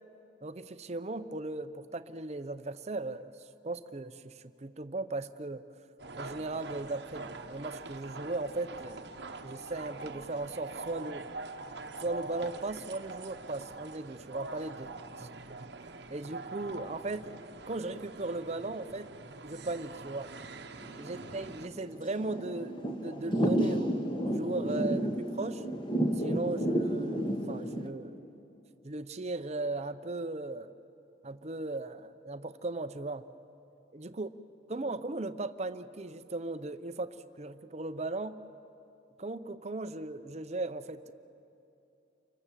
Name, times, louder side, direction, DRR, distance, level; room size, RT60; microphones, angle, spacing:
voice 1, 0.4-5.6 6.2-9.1 9.4-11.3 12.0-14.9 15.2-15.3 15.8-19.1 19.4-20.3 21.0-25.6 26.2-28.2 28.8-30.7 31.2-33.2 33.9-34.3 34.7-38.4 39.2-41.1, right 2 dB, 35° right, 11 dB, 0.7 m, -37 dB
sound 1, 6.0-21.7, right 3 dB, 60° right, 1.1 m, -44 dB
Thunder / Rain, 20.8-27.9, right 1 dB, 25° left, 1.5 m, -31 dB
29.5 x 24.5 x 7.5 m, 2.8 s
head